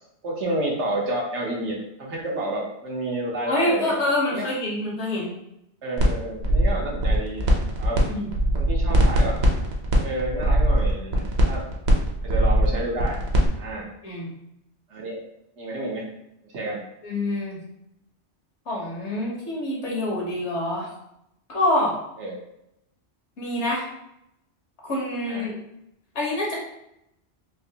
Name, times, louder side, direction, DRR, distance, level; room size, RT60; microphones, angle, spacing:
voice 1, 0.2-3.9 4.3-4.5 5.8-7.5 7.8-8.0 8.5-9.4 10.0-11.6 12.2-13.2 13.6-13.9 14.9-15.2 15.6-16.1 16.5-16.8 22.2-22.4 25.3-25.5, right 1 dB, 90° right, -2 dB, 1.2 m, -30 dB
voice 2, 3.5-5.3 7.9-8.3 14.0-14.3 17.0-17.6 18.7-20.9 21.5-22.0 23.4-23.9 24.8-25.5 26.1-26.5, left 1 dB, 75° left, -3 dB, 1.4 m, -26 dB
sound 1, 6.0-6.1 6.4-8.0 8.3-13.5, right 1 dB, 70° right, 0.9 m, -21 dB
3.8 x 2.5 x 2.8 m, 0.81 s
omnidirectional pair, 1.2 m